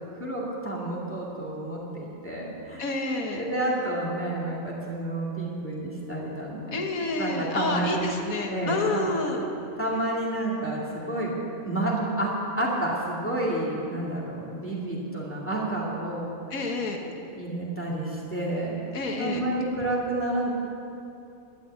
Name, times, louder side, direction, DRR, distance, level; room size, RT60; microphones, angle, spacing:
voice 1, 0.0-2.9 3.3-6.8 7.2-8.0 8.5-9.1 9.8-11.3 11.7-16.7 17.3-18.8 19.2-20.5, right 1 dB, 10° left, -5 dB, 2.2 m, -30 dB
voice 2, 2.8-3.4 6.7-9.4 16.5-17.0 18.9-19.4, left 2 dB, 80° left, 2 dB, 1.8 m, -28 dB
11.5 x 9.3 x 8.5 m, 2.7 s
omnidirectional pair, 1.5 m